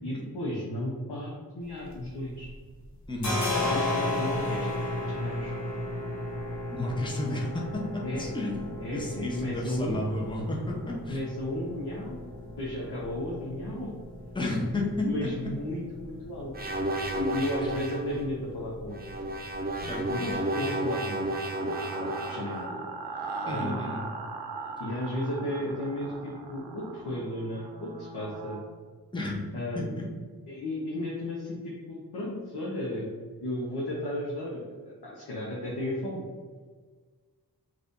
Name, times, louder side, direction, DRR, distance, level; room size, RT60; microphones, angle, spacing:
voice 1, 0.0-2.5 3.6-5.5 8.0-8.3 8.8-10.1 11.1-13.9 15.0-16.5 17.1-19.2 20.1-22.8 23.4-23.9 24.8-28.6 29.5-30.0 30.5-33.1 33.4-36.2, left 1 dB, 80° left, -5 dB, 0.7 m, -34 dB
sound 1, 1.6-2.6 2.8-20.3, left 2 dB, 45° left, 0.8 m, -36 dB
voice 2, 3.1-3.4 6.7-11.2 14.3-15.1 15.4-15.5 19.9-20.6 23.4-24.0 29.1-29.4 29.7-30.1, left 1 dB, 10° left, -2 dB, 0.7 m, -32 dB
sound 2, 16.5-18.2 18.9-22.6, right 1 dB, 25° right, 0.4 m, -32 dB
sound 3, 19.8-28.7, right 4 dB, 85° right, 0.5 m, -40 dB
2.6 x 2.4 x 3.5 m, 1.5 s
wide cardioid pair, 55°, 39 cm